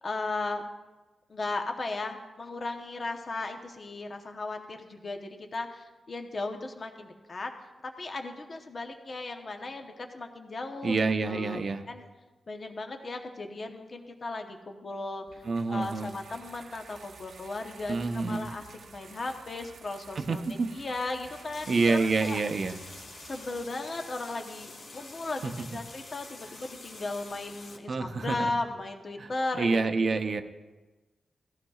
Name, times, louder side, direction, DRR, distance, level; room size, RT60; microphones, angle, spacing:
voice 1, 0.0-0.6 1.3-11.0 11.3-11.6 11.9-12.1 12.5-22.4 23.2-30.2, left 2 dB, 35° left, 4 dB, 0.9 m, -36 dB
voice 2, 10.8-11.8 15.4-16.1 17.9-18.5 20.2-20.7 21.7-22.8 25.4-25.5 27.9-28.5 29.2-30.4, right 3 dB, 45° right, 7 dB, 0.7 m, -28 dB
sound 1, 15.3-23.6, right 5 dB, 75° right, 0.9 m, -52 dB
sound 2, 21.2-27.8, left 3 dB, 65° left, 1.5 m, -47 dB
18.0 x 14.5 x 2.4 m, 1.2 s
wide cardioid pair, 150°, 0 cm